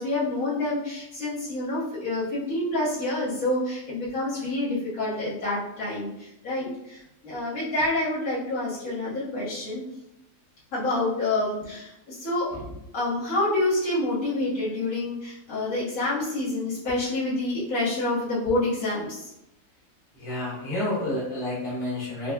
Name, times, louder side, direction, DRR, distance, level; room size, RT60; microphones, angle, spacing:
voice 1, 0.0-9.8 10.7-12.5 12.9-19.3, left 2 dB, 65° left, -10 dB, 1.7 m, -28 dB
voice 2, 20.1-22.3, left 1 dB, 85° left, -8 dB, 1.8 m, -30 dB
4.8 x 2.5 x 2.2 m, 0.84 s
omnidirectional pair, 1.6 m